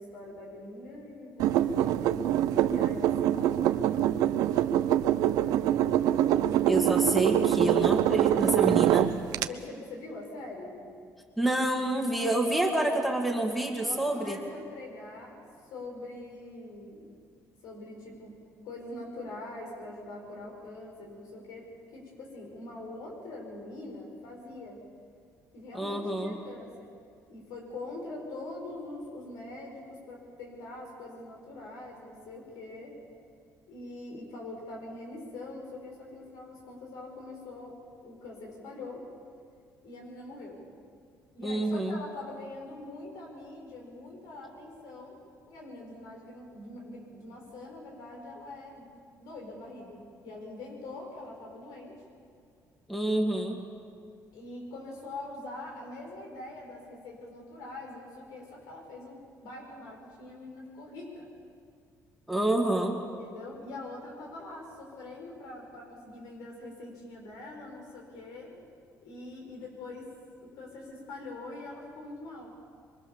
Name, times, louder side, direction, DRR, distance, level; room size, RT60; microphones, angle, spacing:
voice 1, 0.0-3.7 8.3-8.9 9.3-10.8 12.1-12.9 13.8-15.4 15.7-17.1 17.6-18.4 18.6-24.8 25.5-26.9 27.3-33.0 33.7-37.8 38.0-39.1 39.8-40.6 41.3-45.2 45.5-48.8 49.2-52.0 54.3-61.3 63.1-68.5 69.0-70.1 70.4-72.5, left 2 dB, 85° left, 0 dB, 7.0 m, -43 dB
sound 1, 1.4-9.5, right 11 dB, 85° right, 0.8 m, -24 dB
voice 2, 6.6-9.1 11.4-14.4 25.7-26.3 41.4-42.0 52.9-53.6 62.3-63.0, right 1 dB, ahead, 2 dB, 2.0 m, -28 dB
24.0 x 24.0 x 7.3 m, 2.2 s
cardioid pair, 155°, 6 cm